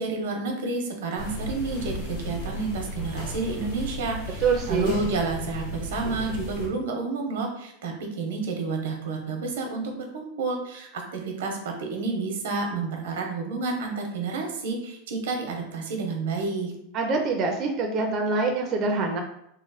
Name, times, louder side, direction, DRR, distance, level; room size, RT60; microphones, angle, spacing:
voice 1, 0.0-16.7, right 3 dB, 90° right, 3 dB, 0.9 m, -30 dB
sound 1, 1.2-6.7, left 1 dB, 60° left, 1.5 m, -34 dB
voice 2, 4.4-5.0 16.9-19.2, right 4 dB, 30° right, 2 dB, 0.4 m, -25 dB
3.0 x 2.1 x 4.0 m, 0.76 s
supercardioid pair, 160°, 0 cm